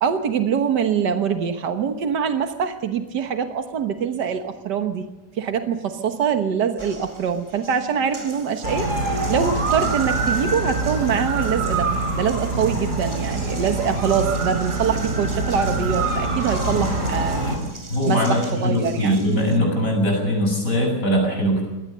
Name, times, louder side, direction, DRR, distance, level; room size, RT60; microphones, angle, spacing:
voice 1, 0.0-5.1 5.4-8.9 9.3-11.9 12.1-17.4 18.1-19.2, right 7 dB, 85° right, 7 dB, 1.9 m, -24 dB
Water tap faucet, 6.8-19.6, right 2 dB, 20° right, 1.5 m, -38 dB
sound 1, 8.6-17.6, right 3 dB, 45° right, 4.2 m, -25 dB
voice 2, 17.9-21.7, equal, 50° left, 1 dB, 7.6 m, -21 dB
23.0 x 17.5 x 6.7 m, 1.1 s
omnidirectional pair, 1.8 m